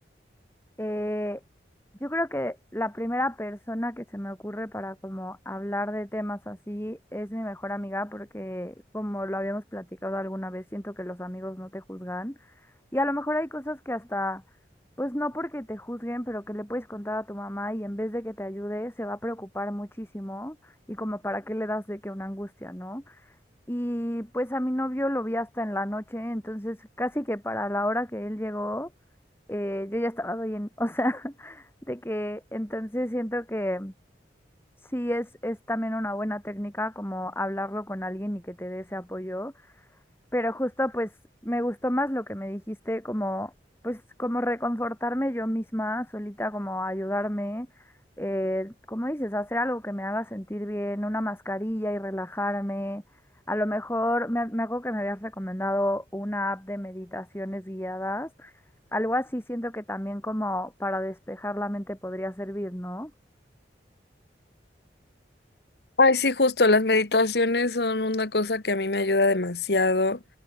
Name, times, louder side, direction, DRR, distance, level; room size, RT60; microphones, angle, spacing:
voice 1, 0.8-1.4 2.0-12.3 12.9-14.4 15.0-23.2 23.7-28.9 29.5-33.9 34.8-39.5 40.3-41.1 41.4-43.5 43.8-47.7 48.2-53.0 53.5-58.5 58.9-63.1, left 1 dB, 15° left, 6.0 m, -31 dB
voice 2, 66.0-70.2, left 3 dB, 65° left, 1.5 m, -22 dB
head